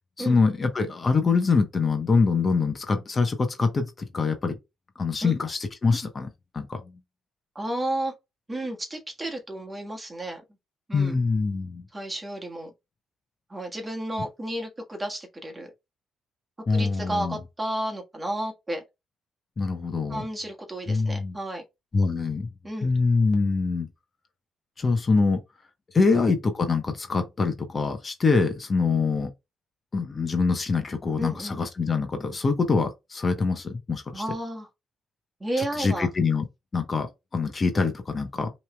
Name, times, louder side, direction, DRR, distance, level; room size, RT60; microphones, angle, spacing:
voice 1, 0.2-4.6 5.0-6.8 10.9-11.8 16.7-17.4 19.6-20.2 20.9-21.4 21.9-22.5 22.8-23.9 24.8-25.4 25.9-29.3 29.9-34.2 35.8-36.4 36.7-38.5, left 4 dB, 35° left, 0.9 m, -24 dB
voice 2, 7.5-8.1 8.5-10.4 10.9-11.1 11.9-12.7 13.5-15.7 16.7-18.8 20.1-21.6 22.6-22.9 31.2-31.6 34.1-34.7 35.4-36.1 37.7-37.9, right 1 dB, 20° right, 1.4 m, -32 dB
5.4 x 3.2 x 2.3 m
cardioid pair, 90°, 0 cm